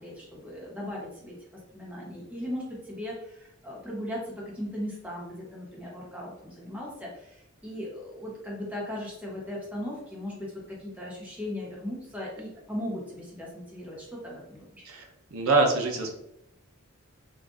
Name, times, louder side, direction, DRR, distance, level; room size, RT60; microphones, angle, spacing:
voice 1, 0.0-1.3 1.7-14.9, left 1 dB, 5° right, -4 dB, 0.7 m, -38 dB
voice 2, 14.9-16.1, right 3 dB, 80° right, 3 dB, 0.6 m, -25 dB
3.6 x 2.5 x 2.4 m, 0.80 s
head